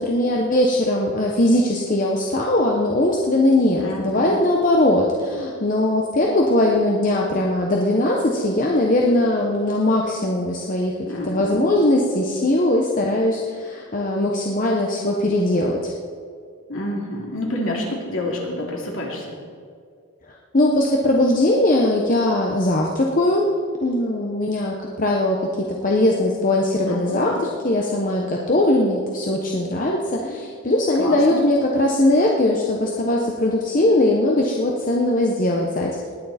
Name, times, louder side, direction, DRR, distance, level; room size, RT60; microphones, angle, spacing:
voice 1, 0.0-10.9 11.2-15.9 20.5-23.5 23.8-35.9, left 1 dB, 35° left, -1 dB, 1.0 m, -20 dB
voice 2, 3.8-4.4 11.1-11.7 16.7-19.4 26.8-27.3 31.0-31.4, left 1 dB, 65° left, -1 dB, 2.8 m, -28 dB
19.0 x 9.5 x 4.3 m, 2.2 s
head